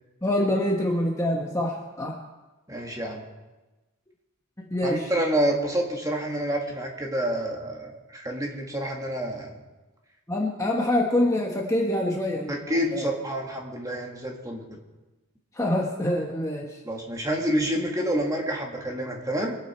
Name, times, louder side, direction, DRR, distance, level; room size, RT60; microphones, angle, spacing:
voice 1, 0.2-2.2 4.6-5.1 10.3-13.1 15.5-16.8, left 1 dB, 15° left, 0 dB, 1.1 m, -26 dB
voice 2, 2.7-3.2 4.8-9.6 12.5-14.8 16.8-19.6, right 1 dB, 15° right, 0 dB, 1.9 m, -28 dB
23.5 x 9.2 x 4.4 m, 1.1 s
head